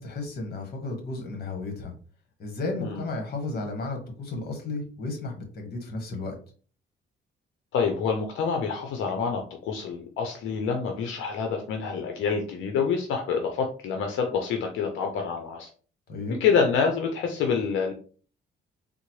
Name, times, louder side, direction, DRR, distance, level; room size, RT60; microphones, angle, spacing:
voice 1, 0.0-1.9 2.4-6.3 16.1-16.4, left 3 dB, 55° left, 3 dB, 1.3 m, -33 dB
voice 2, 7.7-15.7 16.4-17.9, left 6 dB, 85° left, 3 dB, 0.6 m, -27 dB
3.7 x 2.0 x 3.0 m, 0.40 s
cardioid pair, 90°, 20 cm